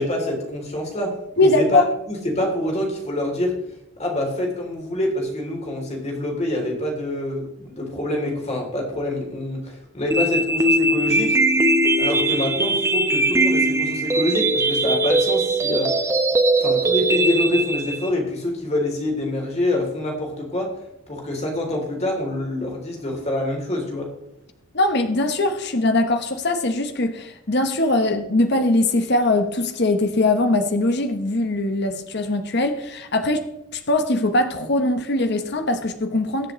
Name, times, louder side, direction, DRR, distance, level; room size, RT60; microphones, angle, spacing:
voice 1, 0.0-1.8 2.1-3.5 4.0-11.4 12.0-16.0 16.6-20.7 21.1-24.1, left 1 dB, 30° left, 0 dB, 3.1 m, -26 dB
voice 2, 1.4-1.9 24.7-33.5 33.7-36.5, left 2 dB, 50° left, 7 dB, 1.0 m, -21 dB
sound 1, 10.1-18.1, right 1 dB, 15° right, 0.8 m, -20 dB
21.0 x 7.6 x 3.1 m, 0.90 s
head